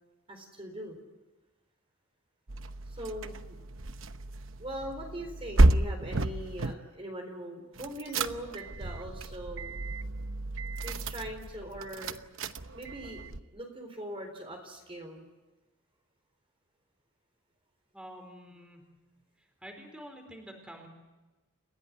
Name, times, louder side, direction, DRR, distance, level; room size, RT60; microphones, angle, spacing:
voice 1, 0.3-1.0 2.9-3.6 4.6-9.8 10.8-12.2 12.7-15.2, right 1 dB, 25° right, 3 dB, 4.0 m, -41 dB
sound 1, 2.5-6.8 7.7-13.4, right 2 dB, 65° right, 0.9 m, -31 dB
voice 2, 17.9-18.8 19.4-20.9, equal, 5° right, 3 dB, 4.4 m, -48 dB
29.5 x 16.5 x 9.8 m, 1.1 s
head